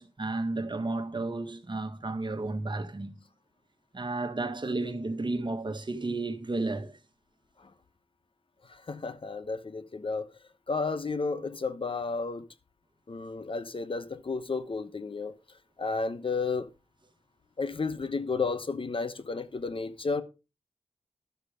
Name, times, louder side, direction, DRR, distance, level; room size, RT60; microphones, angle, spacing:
voice 1, 0.0-3.2 3.9-6.9, right 2 dB, 45° right, 1.6 m, -32 dB
voice 2, 8.6-10.3 10.7-12.4 13.1-15.3 15.8-16.7 17.6-20.2, left 4 dB, 55° left, 1.0 m, -32 dB
12.5 x 6.7 x 5.0 m
wide cardioid pair, 65°, 11 cm